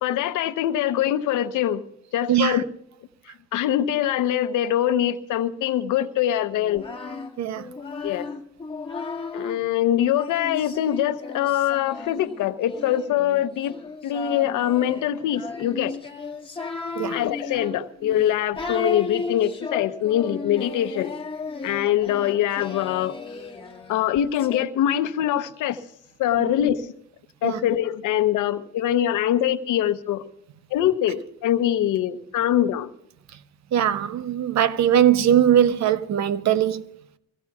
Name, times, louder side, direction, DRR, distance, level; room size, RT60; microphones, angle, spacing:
voice 1, 0.0-1.8 2.1-2.6 3.5-6.9 8.0-8.3 9.3-13.8 14.0-16.0 17.1-21.1 21.6-23.2 23.9-25.8 26.2-26.9 27.4-30.3 30.7-32.9, left 11 dB, 85° left, 0.9 m, -23 dB
voice 2, 2.3-2.6 7.4-7.6 17.0-17.2 27.4-27.6 33.7-36.8, right 10 dB, 65° right, 0.7 m, -20 dB
Singing, 6.6-9.6 10.2-24.6, left 4 dB, 20° left, 1.6 m, -35 dB
23.0 x 16.5 x 2.4 m
cardioid pair, 90°, 30 cm